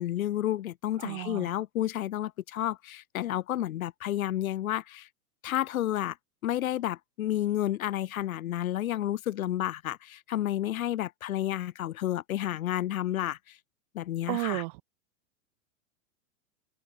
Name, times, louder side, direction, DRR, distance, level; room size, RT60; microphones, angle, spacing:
voice 1, 0.0-5.1 5.4-6.2 6.4-13.6 13.9-14.6, left 13 dB, 70° left, 4.3 m, -31 dB
voice 2, 1.0-1.5 14.3-14.8, right 27 dB, 40° right, 3.1 m, -33 dB
supercardioid pair, 170°, 43 cm